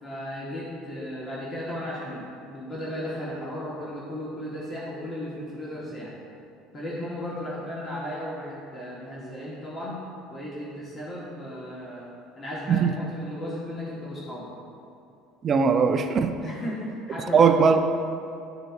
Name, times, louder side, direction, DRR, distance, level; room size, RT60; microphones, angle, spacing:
voice 1, 0.0-6.1 6.7-10.0 10.3-14.5 16.4-17.9, left 1 dB, 20° left, -6 dB, 0.9 m, -35 dB
voice 2, 15.4-16.3 17.3-17.9, right 6 dB, 25° right, 7 dB, 0.3 m, -19 dB
11.5 x 4.0 x 2.3 m, 2.7 s
cardioid pair, 170°, 0 cm